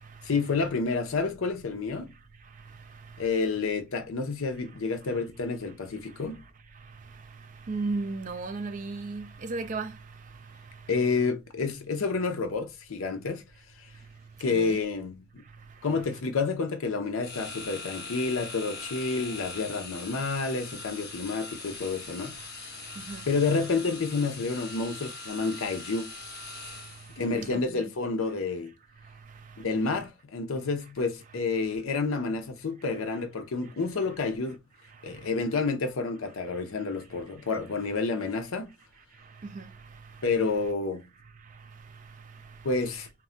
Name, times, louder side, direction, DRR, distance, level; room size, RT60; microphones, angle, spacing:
voice 1, 0.2-2.1 3.2-6.4 10.9-13.4 13.8-13.9 14.4-15.4 15.8-22.4 23.3-26.1 27.2-28.7 29.6-34.6 35.0-38.7 40.2-41.1 42.6-43.1, left 4 dB, 75° left, 0.6 m, -29 dB
voice 2, 2.9-3.5 7.1-7.2 7.7-10.0 14.5-14.8 23.0-23.3 27.3-27.9 39.4-39.7, right 3 dB, 35° right, 0.3 m, -35 dB
sound 1, 17.2-27.3, left 3 dB, 45° left, 0.9 m, -41 dB
2.3 x 2.1 x 3.7 m
head